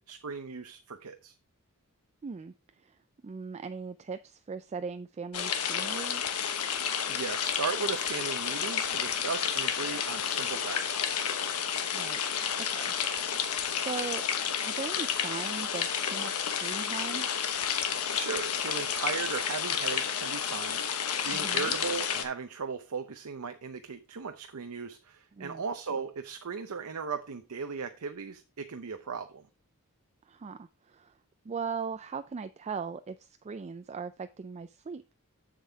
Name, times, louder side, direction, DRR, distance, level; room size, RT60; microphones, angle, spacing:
voice 1, 0.0-1.3 7.1-11.2 18.1-29.5, right 5 dB, 75° right, 0.7 m, -37 dB
voice 2, 2.2-3.0 3.2-6.3 11.9-12.2 12.7-12.9 13.8-14.2 14.6-17.3 21.3-21.7 25.3-25.6 30.2-31.2 31.4-35.0, right 5 dB, 30° right, 0.3 m, -39 dB
sound 1, 5.3-22.2, left 8 dB, 85° left, 1.2 m, -31 dB
7.5 x 7.3 x 3.4 m
head